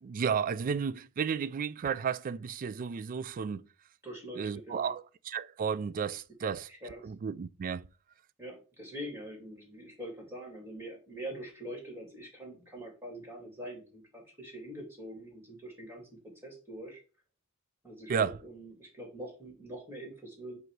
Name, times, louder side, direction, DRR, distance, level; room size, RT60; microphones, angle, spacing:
voice 1, 0.0-3.7 4.4-6.7 7.0-7.9 18.1-18.4, right 6 dB, 40° right, 0.3 m, -33 dB
voice 2, 4.0-4.9 6.7-7.0 8.4-17.0 17.8-20.6, equal, 10° right, 2.3 m, -44 dB
7.7 x 2.7 x 4.6 m
head